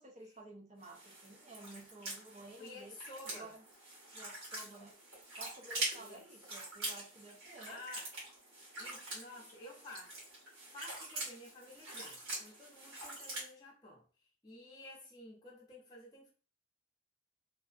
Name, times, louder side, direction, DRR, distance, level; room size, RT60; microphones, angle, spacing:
voice 1, 0.0-2.9 3.3-3.6 4.1-4.9 5.4-7.8, right 2 dB, 35° right, 0.6 m, -53 dB
sound 1, 0.8-13.5, right 2 dB, 90° right, 1.3 m, -45 dB
voice 2, 2.6-3.5 6.0-6.3 7.7-8.1 8.8-10.2 10.7-14.0 14.4-16.3, left 2 dB, 20° left, 0.7 m, -52 dB
2.6 x 2.1 x 2.5 m
head